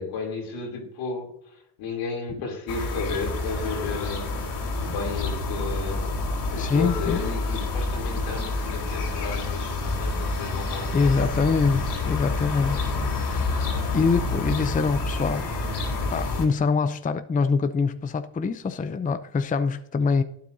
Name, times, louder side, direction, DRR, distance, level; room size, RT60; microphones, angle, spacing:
voice 1, 0.0-4.3 4.8-6.2 6.5-11.6 12.5-13.0, left 4 dB, 75° left, 3.2 m, -33 dB
sound 1, 2.7-16.5, left 3 dB, 60° left, 3.1 m, -28 dB
voice 2, 6.6-7.2 10.9-12.8 13.2-13.5 13.9-15.5 16.1-20.2, left 4 dB, 20° left, 0.6 m, -24 dB
12.0 x 9.4 x 2.7 m
supercardioid pair, 70°, 46 cm